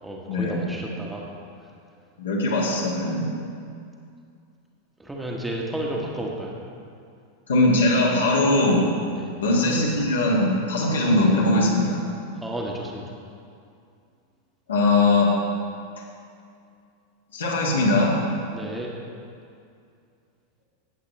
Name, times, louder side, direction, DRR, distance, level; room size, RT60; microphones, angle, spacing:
voice 1, 0.0-1.3 5.0-6.5 9.1-9.3 12.4-13.0 18.5-18.9, right 1 dB, 5° right, -2 dB, 1.3 m, -32 dB
voice 2, 2.2-3.3 7.5-8.8 9.4-12.0 14.7-15.3 17.3-18.1, left 2 dB, 65° left, -3 dB, 2.1 m, -20 dB
15.5 x 7.9 x 3.3 m, 2.4 s
figure-of-eight pair, 90°, 0 cm